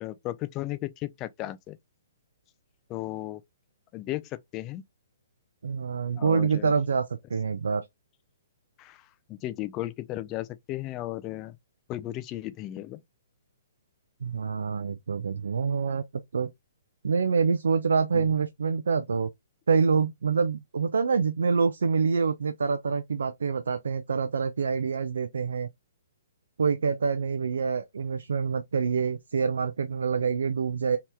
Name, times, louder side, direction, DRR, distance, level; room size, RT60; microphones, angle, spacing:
voice 1, 0.0-1.8 2.9-3.4 3.9-4.8 6.2-6.7 8.8-11.6 11.9-13.0 18.1-18.3, left 15 dB, 25° left, 0.3 m, -35 dB
voice 2, 5.6-7.9 14.2-16.0 16.3-16.5 17.0-19.3 19.7-25.7 26.6-31.0, right 5 dB, 85° right, 0.4 m, -26 dB
2.8 x 2.2 x 3.2 m
hypercardioid pair, 150°, 0 cm